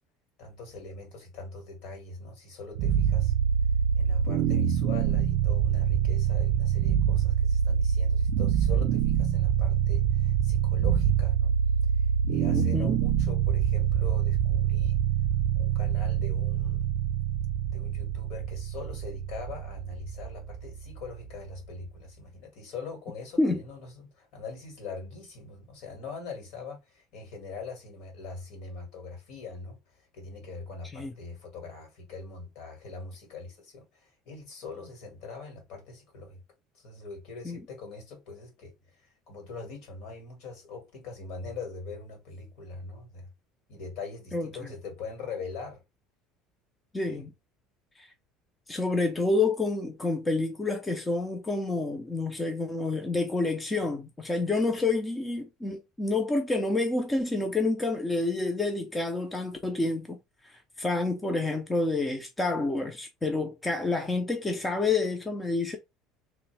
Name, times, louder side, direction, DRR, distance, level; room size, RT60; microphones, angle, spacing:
voice 1, 0.4-3.3 4.0-11.6 12.3-15.0 15.6-16.9 17.7-36.4 36.7-39.0 39.3-43.3 43.7-45.8 47.1-47.2, left 4 dB, 60° left, 2.0 m, -42 dB
sound 1, 2.7-21.8, right 9 dB, 75° right, 0.5 m, -26 dB
voice 2, 12.5-13.0 23.4-23.6 30.9-31.1 37.4-37.6 44.3-44.5 46.9-47.3 48.0-48.1 48.7-60.2 60.4-65.8, left 3 dB, 10° left, 0.5 m, -28 dB
3.4 x 3.0 x 3.3 m
cardioid pair, 170°, 0 cm